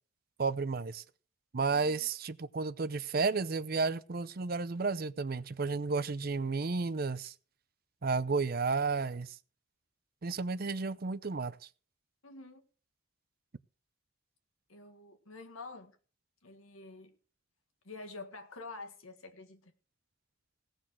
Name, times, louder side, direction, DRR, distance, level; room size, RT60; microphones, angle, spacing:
voice 1, 0.4-1.0 1.5-7.3 8.0-9.4 10.2-11.6, right 4 dB, 45° right, 0.6 m, -32 dB
voice 2, 1.7-2.1 12.2-12.6 14.7-16.0 16.4-17.1 17.8-19.7, left 3 dB, 80° left, 1.8 m, -48 dB
17.0 x 6.4 x 6.2 m
head